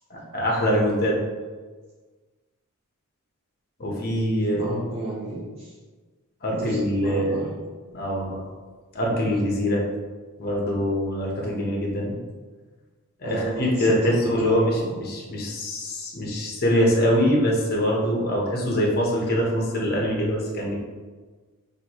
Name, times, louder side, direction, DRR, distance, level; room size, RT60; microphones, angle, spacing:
voice 1, 0.1-1.2 3.8-4.7 6.4-7.4 7.9-8.4 8.9-9.8 10.4-12.2 13.2-20.7, equal, 45° left, -2 dB, 1.1 m, -24 dB
voice 2, 4.6-5.7 6.5-7.5 13.2-14.9, right 2 dB, 25° right, -7 dB, 0.6 m, -32 dB
5.9 x 2.7 x 3.0 m, 1.4 s
head